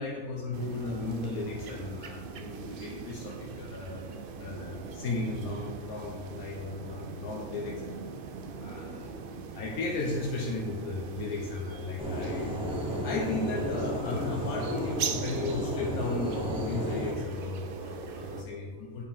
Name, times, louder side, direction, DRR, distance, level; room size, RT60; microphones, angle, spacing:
voice 1, 0.0-4.1 4.4-7.8 8.6-9.1 9.5-12.5 13.0-19.0, left 3 dB, 85° left, -2 dB, 1.3 m, -35 dB
sound 1, 0.5-18.4, right 5 dB, 65° right, 0.5 m, -41 dB
sound 2, 12.0-17.1, equal, 5° right, 0.9 m, -33 dB
8.4 x 4.5 x 3.6 m, 1.5 s
omnidirectional pair, 1.5 m